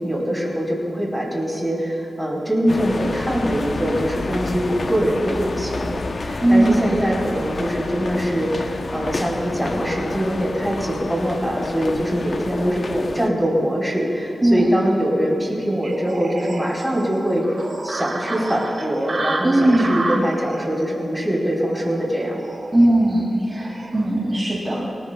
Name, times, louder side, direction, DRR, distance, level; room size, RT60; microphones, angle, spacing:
voice 1, 0.0-17.4 17.8-22.4, equal, ahead, -4 dB, 4.1 m, -23 dB
sound 1, 2.7-13.3, left 3 dB, 45° left, 0.7 m, -29 dB
voice 2, 6.4-7.0 14.4-14.7 19.4-20.0 22.7-24.9, right 1 dB, 20° right, -5 dB, 2.2 m, -18 dB
sound 2, 15.8-24.1, right 2 dB, 40° right, 1.7 m, -31 dB
28.0 x 20.5 x 2.3 m, 2.5 s
wide cardioid pair, 175°, 0 cm